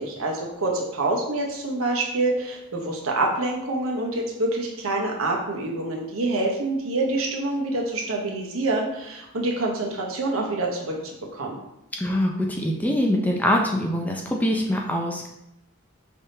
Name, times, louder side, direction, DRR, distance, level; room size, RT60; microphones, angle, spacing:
voice 1, 0.0-11.6, right 2 dB, 70° right, 0 dB, 0.9 m, -26 dB
voice 2, 12.0-15.3, left 1 dB, 5° left, 0 dB, 0.3 m, -24 dB
5.3 x 3.5 x 2.7 m, 0.87 s
head